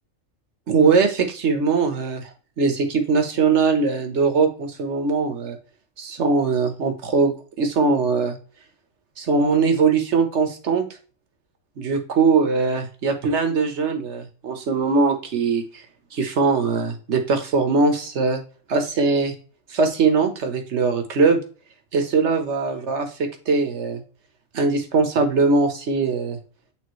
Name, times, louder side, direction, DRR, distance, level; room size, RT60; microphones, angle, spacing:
voice 1, 0.7-2.3 2.6-5.6 6.0-7.3 7.6-8.4 9.2-10.8 11.8-15.8 16.1-18.4 18.7-19.3 19.7-21.4 21.9-24.0 24.5-26.4, right 4 dB, 55° right, 6 dB, 1.3 m, -21 dB
8.7 x 3.7 x 3.1 m, 0.38 s
omnidirectional pair, 1.5 m